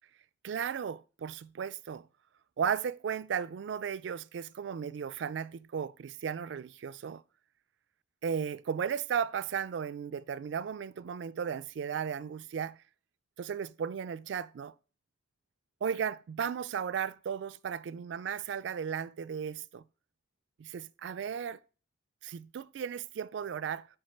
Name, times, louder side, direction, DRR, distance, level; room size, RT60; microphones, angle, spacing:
voice 1, 0.4-2.1 2.6-7.2 8.2-12.8 13.4-14.7 15.8-19.8 20.6-21.6 22.2-23.9, right 7 dB, 75° right, 0.3 m, -35 dB
6.4 x 4.5 x 4.4 m
head